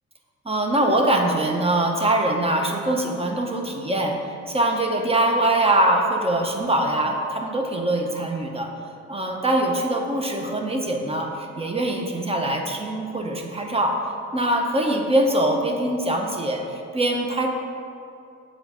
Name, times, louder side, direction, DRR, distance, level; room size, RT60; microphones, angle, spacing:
voice 1, 0.4-4.2 4.5-8.7 9.1-14.0 14.3-17.5, right 1 dB, 20° right, 2 dB, 0.8 m, -23 dB
7.7 x 3.7 x 4.9 m, 2.5 s
cardioid pair, 90°, 30 cm